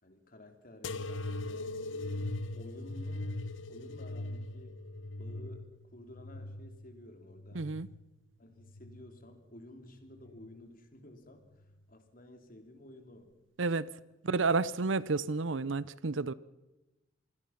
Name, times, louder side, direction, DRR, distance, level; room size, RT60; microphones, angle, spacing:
voice 1, 0.0-3.4 3.7-4.8 5.1-7.7 8.4-11.5 11.9-13.3, left 1 dB, 45° left, 5 dB, 3.2 m, -53 dB
sound 1, 0.8-8.0 8.6-9.3 10.1-10.6 11.6-11.7, left 2 dB, 85° left, 1.0 m, -40 dB
voice 2, 7.5-7.9 13.6-13.9 14.2-16.3, right 3 dB, 85° right, 19 dB, 0.7 m, -30 dB
26.5 x 20.0 x 5.8 m, 1.1 s
head